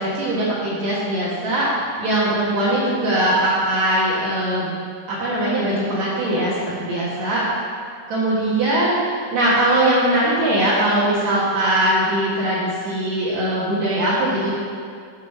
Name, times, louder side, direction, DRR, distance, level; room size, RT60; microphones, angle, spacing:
voice 1, 0.0-4.7 5.1-7.5 8.1-14.5, right 1 dB, 65° right, -8 dB, 1.8 m, -21 dB
6.4 x 6.4 x 5.4 m, 2.2 s
omnidirectional pair, 5.4 m